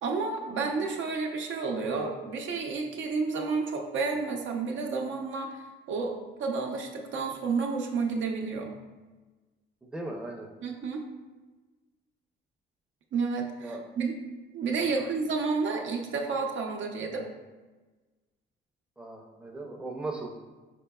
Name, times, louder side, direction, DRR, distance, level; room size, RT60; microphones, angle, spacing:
voice 1, 0.0-8.7 10.6-11.0 13.1-14.1 14.5-17.3, right 4 dB, 70° right, 1 dB, 0.7 m, -31 dB
voice 2, 9.8-10.5 13.6-13.8 15.0-15.1 19.0-20.3, right 2 dB, 5° right, 0 dB, 0.6 m, -38 dB
4.6 x 4.4 x 2.3 m, 1.3 s
cardioid pair, 90°, 20 cm